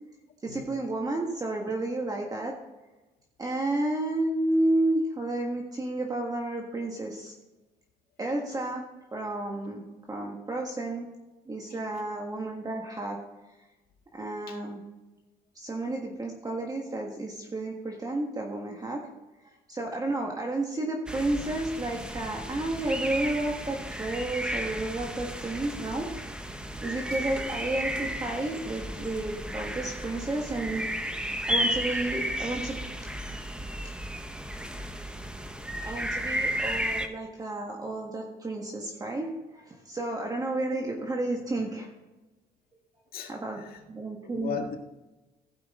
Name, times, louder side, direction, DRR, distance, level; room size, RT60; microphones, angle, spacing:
voice 1, 0.4-2.5 3.4-7.3 8.2-8.8 9.1-11.1 11.5-13.2 14.1-14.8 15.5-19.0 19.7-26.1 26.8-30.9 31.4-32.8 33.5-33.6 35.8-41.9 43.2-43.6 43.9-44.6, right 2 dB, 20° right, 0 dB, 1.5 m, -31 dB
sound 1, 21.1-37.1, equal, 5° right, 0.9 m, -33 dB
voice 2, 43.1-43.8 44.3-44.7, left 7 dB, 65° left, 3 dB, 1.8 m, -37 dB
16.0 x 5.7 x 3.7 m, 1.1 s
cardioid pair, 110°, 17 cm